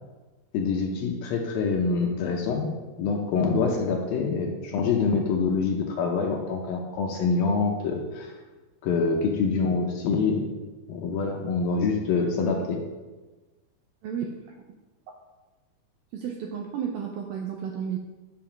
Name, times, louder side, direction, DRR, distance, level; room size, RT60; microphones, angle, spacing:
voice 1, 0.5-2.7 3.0-8.3 8.8-10.5 10.9-12.8, left 4 dB, 70° left, 1 dB, 2.4 m, -25 dB
voice 2, 14.0-14.6 16.1-18.0, right 7 dB, 80° right, 2 dB, 2.1 m, -32 dB
7.6 x 7.5 x 6.0 m, 1.2 s
omnidirectional pair, 4.9 m